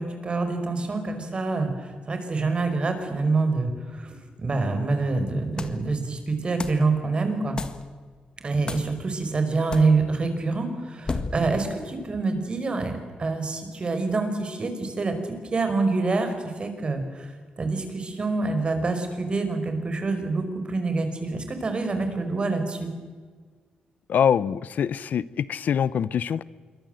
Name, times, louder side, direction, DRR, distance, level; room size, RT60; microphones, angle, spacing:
voice 1, 0.0-7.6 8.4-12.9 13.2-15.2 15.5-16.3 16.6-17.3 17.6-22.9, right 3 dB, 35° right, 7 dB, 4.9 m, -26 dB
sound 1, 5.6-5.9 6.6-6.9 7.6-7.9 8.7-9.0 9.7-10.0 11.1-11.5, left 3 dB, 30° left, 1.7 m, -32 dB
voice 2, 24.1-26.4, left 8 dB, 65° left, 18 dB, 0.7 m, -24 dB
27.0 x 23.5 x 7.8 m, 1.5 s
cardioid pair, 125°, 3 cm